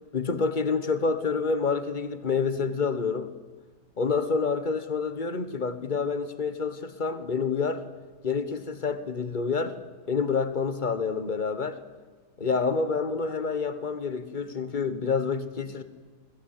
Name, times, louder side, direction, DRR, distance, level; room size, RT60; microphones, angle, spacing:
voice 1, 0.1-3.3 4.0-7.8 8.2-9.7 10.1-11.8 12.4-15.8, left 5 dB, 30° left, 12 dB, 1.3 m, -28 dB
22.0 x 16.5 x 9.0 m, 1.5 s
omnidirectional pair, 1.8 m